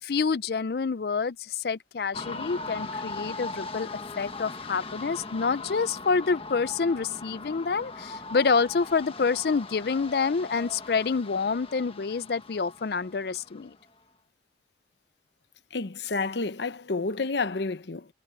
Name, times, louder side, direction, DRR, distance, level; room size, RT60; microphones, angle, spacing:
voice 1, 0.0-3.9 4.2-13.8, left 5 dB, 60° left, 0.5 m, -27 dB
sound 1, 2.1-13.8, left 3 dB, 30° left, 1.4 m, -40 dB
voice 2, 15.7-18.1, left 3 dB, 80° left, 0.9 m, -30 dB
head